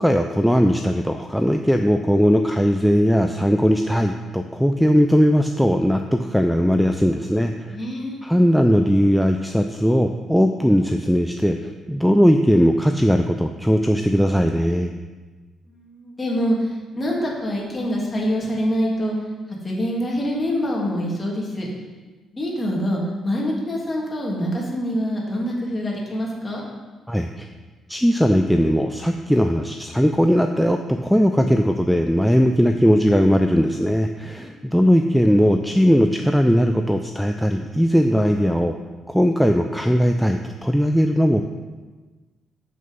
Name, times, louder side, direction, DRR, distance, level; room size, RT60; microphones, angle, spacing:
voice 1, 0.0-7.8 8.2-14.9 27.1-27.5 27.9-38.8 39.1-41.4, equal, ahead, 5 dB, 0.5 m, -19 dB
voice 2, 7.7-8.3 15.7-19.1 19.6-21.7 22.3-26.6 34.3-34.7, equal, 25° left, -3 dB, 2.7 m, -25 dB
8.0 x 6.4 x 5.4 m, 1.3 s
cardioid pair, 90°, 0 cm